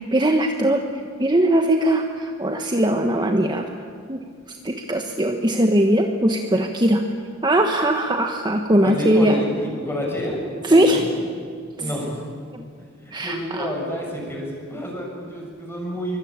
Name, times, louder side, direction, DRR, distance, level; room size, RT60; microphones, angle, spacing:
voice 1, 0.1-3.7 4.1-7.1 7.4-9.4 10.6-11.0 11.8-11.9 12.5-12.6 13.1-13.7, right 1 dB, 25° right, 4 dB, 1.3 m, -20 dB
voice 2, 8.8-10.4 10.7-11.1 11.8-12.2 13.0-16.2, equal, 15° left, -1 dB, 7.5 m, -29 dB
24.5 x 24.0 x 8.9 m, 2.1 s
head